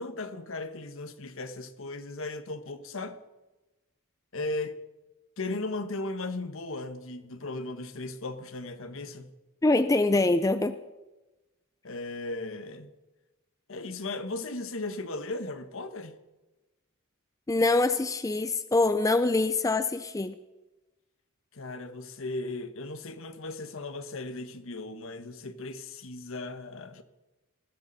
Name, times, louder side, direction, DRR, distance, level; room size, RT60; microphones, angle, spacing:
voice 1, 0.0-3.2 4.3-4.8 5.4-9.3 11.8-12.9 13.7-16.1 21.5-27.0, left 2 dB, 65° left, 1.3 m, -36 dB
voice 2, 9.6-10.8 17.5-20.4, left 2 dB, 15° left, 0.4 m, -24 dB
20.5 x 15.5 x 4.1 m
head